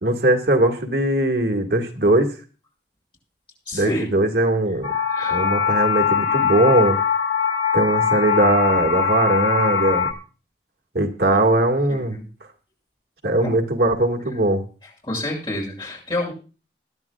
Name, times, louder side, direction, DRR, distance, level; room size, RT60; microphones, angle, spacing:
voice 1, 0.0-2.3 3.7-4.9 5.3-7.0 7.7-10.1 10.9-12.2 13.2-14.6, right 1 dB, 65° right, 3 dB, 2.0 m, -20 dB
voice 2, 3.7-4.1 5.0-5.5 11.3-11.5 11.9-12.2 13.4-13.5 15.0-16.3, left 1 dB, 25° left, -3 dB, 6.8 m, -28 dB
sound 1, 4.8-10.1, left 6 dB, 80° left, 2.0 m, -21 dB
22.0 x 11.0 x 2.4 m, 0.35 s
head